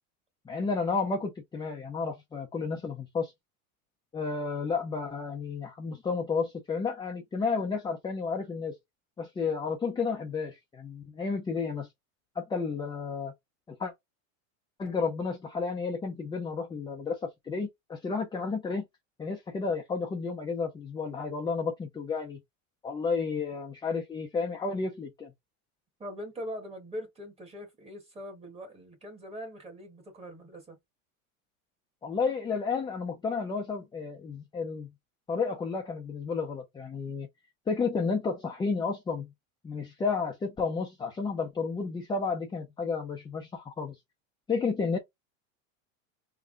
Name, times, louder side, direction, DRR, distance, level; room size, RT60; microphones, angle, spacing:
voice 1, 0.5-3.3 4.1-8.7 9.2-11.9 12.3-13.3 13.7-13.9 14.8-18.8 19.2-22.4 22.8-25.3 32.0-34.9 35.3-37.3 37.7-39.3 39.6-44.0 44.5-45.0, left 4 dB, 10° left, 0.6 m, -32 dB
voice 2, 26.0-30.8, equal, 15° right, 1.5 m, -42 dB
3.6 x 2.8 x 3.7 m
supercardioid pair, 135°, 40 cm